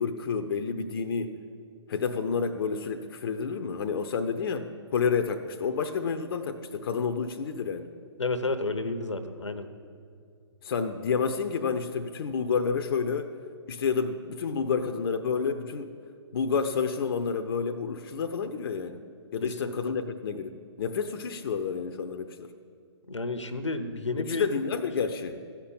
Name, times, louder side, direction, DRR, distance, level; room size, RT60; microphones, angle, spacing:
voice 1, 0.0-1.4 1.9-7.9 10.6-13.4 13.7-15.9 16.3-19.0 19.3-22.5 24.2-25.4, left 5 dB, 50° left, 7 dB, 0.7 m, -29 dB
voice 2, 8.2-9.7 19.4-19.9 23.1-24.5, left 2 dB, 90° left, 10 dB, 1.0 m, -31 dB
14.0 x 5.9 x 8.6 m, 2.3 s
figure-of-eight pair, 130°, 15 cm